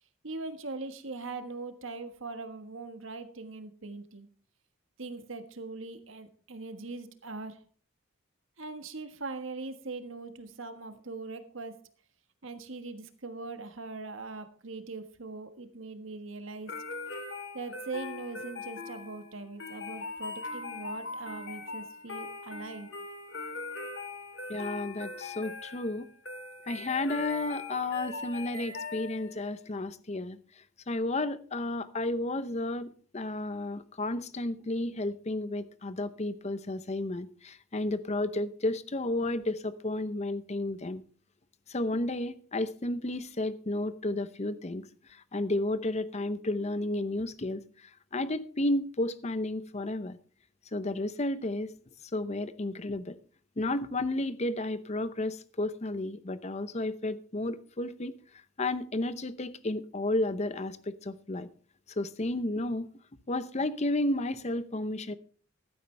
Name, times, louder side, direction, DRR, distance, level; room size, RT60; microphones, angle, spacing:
voice 1, 0.2-4.3 5.0-7.6 8.6-11.8 12.4-16.7 17.5-22.9, right 3 dB, 80° right, 1.5 m, -41 dB
sound 1, 16.7-29.5, left 3 dB, 65° left, 2.4 m, -40 dB
voice 2, 24.5-26.1 26.7-41.0 41.7-50.2 50.7-51.7 52.1-53.2 53.6-58.2 58.6-61.5 61.9-62.9 63.3-65.1, left 2 dB, 35° left, 0.7 m, -32 dB
15.0 x 12.5 x 3.3 m
head